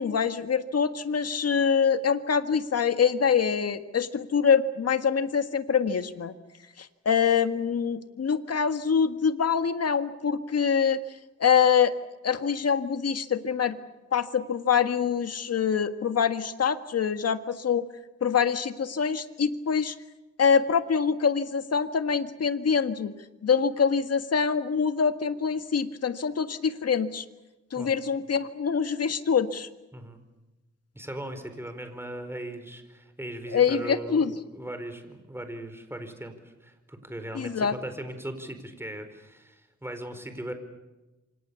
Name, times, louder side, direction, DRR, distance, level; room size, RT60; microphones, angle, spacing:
voice 1, 0.0-6.3 6.8-11.0 11.4-11.9 12.2-13.8 14.1-17.9 18.2-20.0 20.4-23.1 23.4-27.3 27.7-29.7 33.5-34.3 37.3-37.7, left 6 dB, 55° left, 9 dB, 1.8 m, -25 dB
voice 2, 29.9-30.2 30.9-40.5, right 1 dB, 10° right, 8 dB, 4.7 m, -38 dB
28.0 x 26.0 x 7.1 m, 1.1 s
cardioid pair, 95°, 29 cm